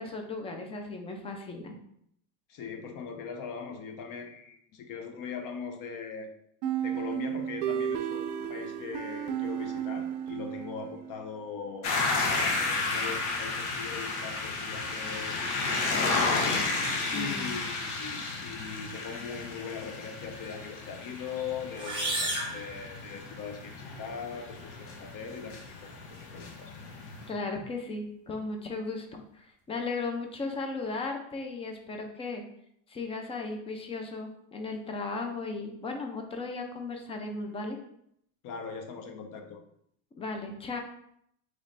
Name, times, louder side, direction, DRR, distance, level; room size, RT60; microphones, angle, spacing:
voice 1, 0.0-1.8 17.1-17.5 27.3-32.4 32.9-37.8 40.2-40.8, left 3 dB, 15° left, 4 dB, 0.3 m, -36 dB
voice 2, 2.5-6.3 6.8-11.9 12.2-15.5 15.9-16.7 17.1-26.7 38.4-39.6, left 6 dB, 45° left, 6 dB, 0.7 m, -40 dB
sound 1, 6.6-11.3, right 9 dB, 80° right, 0.6 m, -33 dB
sound 2, 11.8-27.3, left 3 dB, 75° left, 1.0 m, -33 dB
sound 3, 21.7-23.6, right 1 dB, 10° right, 0.9 m, -34 dB
3.2 x 3.1 x 3.9 m, 0.72 s
supercardioid pair, 125°, 46 cm